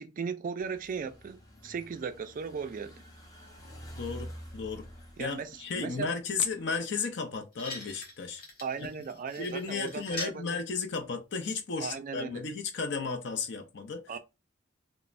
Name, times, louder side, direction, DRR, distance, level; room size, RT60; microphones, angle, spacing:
voice 1, 0.0-3.0 5.2-6.2 8.6-10.6 11.8-12.4 14.1-14.2, right 6 dB, 45° right, 0.3 m, -37 dB
sound 1, 0.6-6.8, equal, 20° left, 0.7 m, -48 dB
voice 2, 4.0-4.9 5.2-8.4 9.4-14.0, left 4 dB, 60° left, 0.6 m, -34 dB
sound 2, 7.1-7.2 7.5-10.4 11.4-11.5, left 3 dB, 45° left, 1.0 m, -43 dB
3.1 x 2.1 x 2.4 m
head